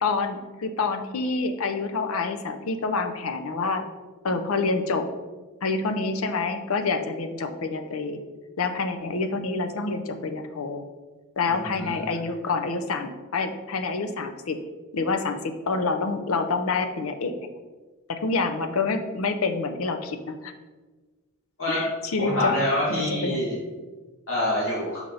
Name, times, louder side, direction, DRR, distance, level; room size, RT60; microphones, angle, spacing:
voice 1, 0.0-3.8 4.2-5.1 5.6-8.2 8.6-10.8 11.4-14.6 14.9-17.3 18.1-20.5 21.7-22.5 22.9-23.4, left 4 dB, 90° left, 7 dB, 0.6 m, -27 dB
voice 2, 11.5-12.1 21.6-21.9 22.2-23.6 24.3-25.0, left 1 dB, 70° left, -6 dB, 1.9 m, -26 dB
5.4 x 4.5 x 3.8 m, 1.3 s
head